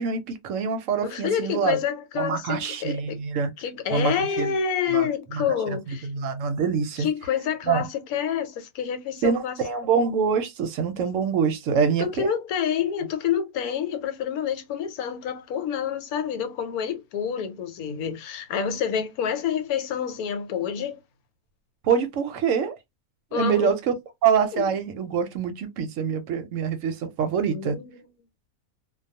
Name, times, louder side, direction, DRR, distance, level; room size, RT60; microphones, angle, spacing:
voice 1, 0.0-1.8 2.2-3.5 3.9-4.5 4.9-7.1 7.7-7.9 9.2-12.3 21.8-22.8 23.3-23.9 24.2-27.8, right 6 dB, 70° right, 0.9 m, -25 dB
voice 2, 1.0-3.2 3.6-6.1 7.0-9.5 12.0-21.0 23.3-23.8 24.5-24.6 27.4-28.0, left 8 dB, 80° left, 1.1 m, -28 dB
2.3 x 2.2 x 2.6 m
omnidirectional pair, 1.6 m